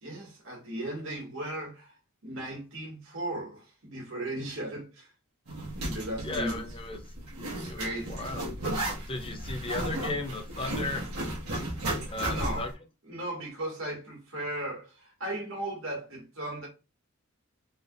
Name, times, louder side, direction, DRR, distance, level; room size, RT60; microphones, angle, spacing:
voice 1, 0.0-1.9 2.2-5.1 5.8-6.6 7.8-8.3 12.3-12.7 13.0-16.7, right 1 dB, 65° right, 1.9 m, -36 dB
Zipper (clothing), 5.5-12.7, right 1 dB, 85° right, 1.4 m, -34 dB
voice 2, 6.2-7.0 7.6-8.5 9.1-11.0 12.1-12.7, left 2 dB, 25° left, 0.6 m, -35 dB
3.9 x 3.4 x 2.5 m
head